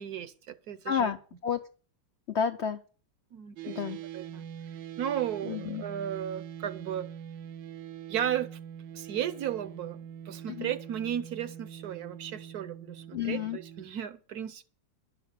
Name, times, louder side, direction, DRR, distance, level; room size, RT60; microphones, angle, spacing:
voice 1, 0.0-1.1 3.3-3.8 4.1-4.4 5.0-7.1 8.1-8.6 8.9-10.0 10.3-14.7, right 10 dB, 65° right, 1.1 m, -35 dB
voice 2, 0.9-1.6 2.3-2.8 3.7-4.0 5.4-5.8 10.5-10.7 13.1-13.6, left 7 dB, 90° left, 0.5 m, -31 dB
sound 1, 3.6-13.9, right 9 dB, 80° right, 1.5 m, -43 dB
11.5 x 6.5 x 8.2 m
omnidirectional pair, 2.1 m